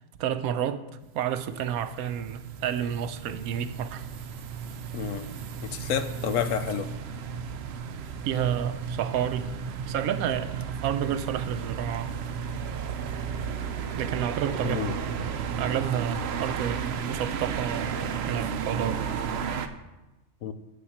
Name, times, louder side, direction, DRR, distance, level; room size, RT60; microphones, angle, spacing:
voice 1, 0.2-0.9 1.1-4.1 8.2-9.5 9.9-12.1 14.0-14.9 15.6-19.0, right 9 dB, 80° right, 1.1 m, -30 dB
sound 1, 1.0-19.7, right 7 dB, 60° right, 0.8 m, -33 dB
voice 2, 4.9-5.3 5.6-6.9 14.6-15.0 20.4-20.5, left 8 dB, 70° left, 1.0 m, -29 dB
7.2 x 6.9 x 7.2 m
omnidirectional pair, 1.5 m